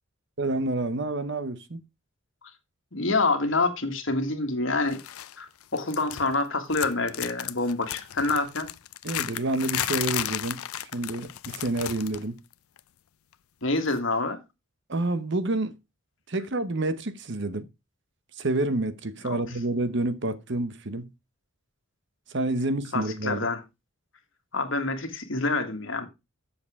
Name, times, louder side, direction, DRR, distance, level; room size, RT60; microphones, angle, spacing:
voice 1, 0.4-1.8 9.0-12.4 14.9-15.8 16.3-17.7 18.4-21.1 22.3-23.5, right 2 dB, 55° right, 1.0 m, -28 dB
voice 2, 2.9-5.0 5.4-8.7 13.6-14.4 19.2-19.4 22.9-23.6 24.5-26.1, left 3 dB, 60° left, 1.7 m, -27 dB
sound 1, 4.9-5.4 5.6-6.4 6.7-12.3 12.5-12.8 13.9-14.0, left 12 dB, 85° left, 0.5 m, -34 dB
7.9 x 7.1 x 4.8 m
head